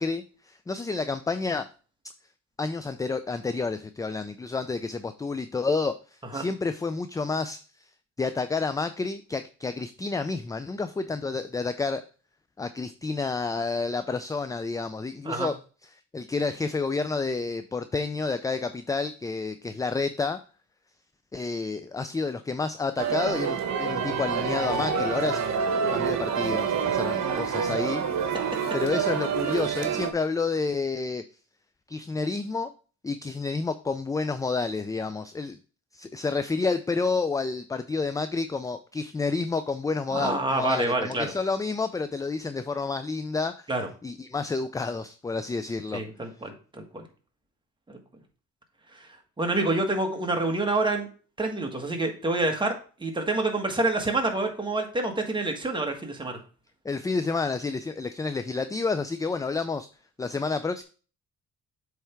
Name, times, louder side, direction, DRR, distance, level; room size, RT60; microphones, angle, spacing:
voice 1, 0.0-1.7 2.6-7.8 8.2-12.0 12.6-15.5 16.1-20.4 21.3-25.4 25.9-28.4 28.7-31.2 31.9-32.7 33.0-35.6 35.9-43.7 44.0-46.0 56.8-59.9 60.2-60.8, left 4 dB, 10° left, 10 dB, 0.3 m, -29 dB
sound 1, 23.0-30.1, right 6 dB, 65° right, 1.1 m, -27 dB
voice 2, 40.1-41.3 43.7-43.9 45.9-47.0 47.9-48.0 48.9-49.1 49.4-51.1 51.4-56.4, right 2 dB, 15° right, 3 dB, 1.6 m, -27 dB
7.8 x 3.5 x 4.5 m, 0.38 s
cardioid pair, 90°, 30 cm